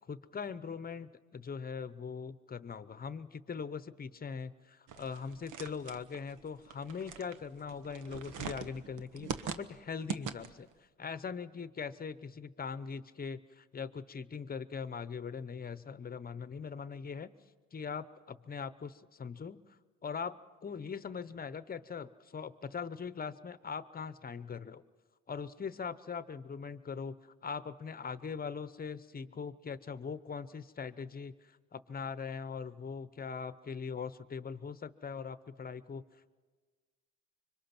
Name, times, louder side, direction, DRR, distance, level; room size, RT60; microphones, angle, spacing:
voice 1, 0.1-10.7 11.0-17.3 17.7-24.8 25.3-36.0, left 6 dB, 30° left, 15 dB, 0.8 m, -41 dB
sound 1, 4.9-10.7, right 6 dB, 80° right, 1.2 m, -42 dB
25.5 x 23.5 x 6.0 m, 1.4 s
cardioid pair, 90°, 30 cm